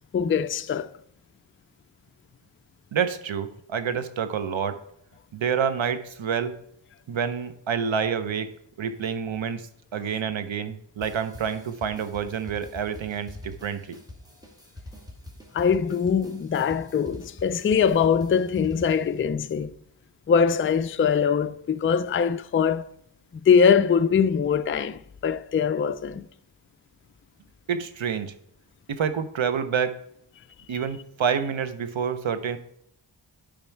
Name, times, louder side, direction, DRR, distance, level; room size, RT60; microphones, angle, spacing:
voice 1, 0.1-0.9 15.5-19.7 20.3-22.9 23.3-26.3, left 6 dB, 30° left, 0.4 m, -22 dB
voice 2, 2.9-4.8 5.3-6.6 7.1-8.5 8.8-14.0 27.7-28.3 28.9-29.9 30.7-32.6, right 7 dB, 70° right, 0.8 m, -28 dB
sound 1, 11.0-19.2, left 1 dB, 10° right, 1.5 m, -45 dB
9.1 x 5.1 x 4.5 m
wide cardioid pair, 65°, 48 cm